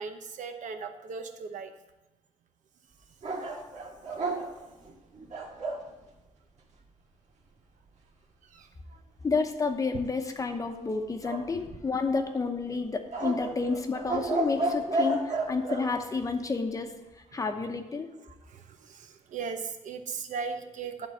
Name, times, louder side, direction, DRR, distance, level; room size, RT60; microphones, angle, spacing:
voice 1, 0.0-1.7 3.4-3.5 8.5-9.0 15.3-15.4 18.3-21.1, right 5 dB, 90° right, 6 dB, 0.9 m, -38 dB
sound 1, 3.2-5.9 11.2-12.1 13.1-15.9, right 2 dB, 70° right, 1.8 m, -32 dB
voice 2, 9.2-16.9 17.3-18.1, left 4 dB, 25° left, 5 dB, 0.8 m, -30 dB
11.5 x 3.9 x 7.1 m, 1.0 s
wide cardioid pair, 170°, 13 cm